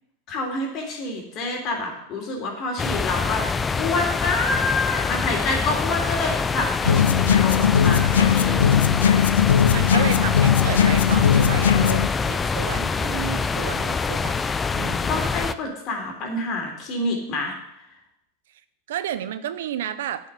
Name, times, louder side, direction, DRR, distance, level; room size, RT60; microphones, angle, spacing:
voice 1, 0.3-3.5 3.8-8.8 15.1-17.5, left 2 dB, 45° left, 1 dB, 3.5 m, -27 dB
sound 1, 2.8-15.5, left 5 dB, 20° left, 0.5 m, -25 dB
sound 2, 6.8-12.1, left 8 dB, 90° left, 0.4 m, -19 dB
voice 2, 9.7-15.4 18.9-20.3, right 10 dB, 75° right, 13 dB, 0.7 m, -32 dB
9.3 x 5.9 x 7.9 m, 0.81 s
hypercardioid pair, 100°, 0 cm